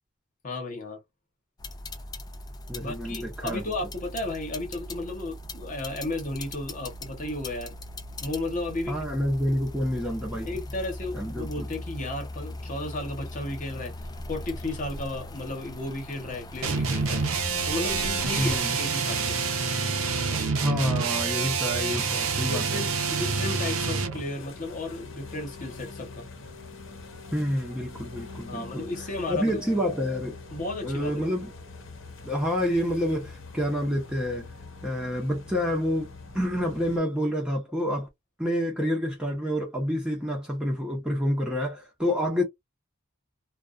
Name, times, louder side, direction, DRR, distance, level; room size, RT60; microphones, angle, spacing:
voice 1, 0.4-1.0 2.8-7.7 8.2-9.0 10.5-13.9 14.3-17.2 17.7-19.3 22.5-26.3 28.5-29.6 30.5-31.3, left 2 dB, 40° left, 1.0 m, -34 dB
sound 1, 1.6-18.6, left 1 dB, 20° left, 0.4 m, -39 dB
voice 2, 2.7-3.6 8.9-10.5 11.1-11.7 18.4-18.7 20.6-22.8 27.3-28.8 29.3-30.3 30.8-31.5 32.2-34.5 34.8-38.1 38.4-42.4, equal, 5° right, 0.7 m, -28 dB
sound 2, 16.6-24.2, right 5 dB, 85° right, 0.6 m, -27 dB
sound 3, 24.1-37.0, left 3 dB, 65° left, 0.8 m, -44 dB
2.3 x 2.3 x 2.4 m
head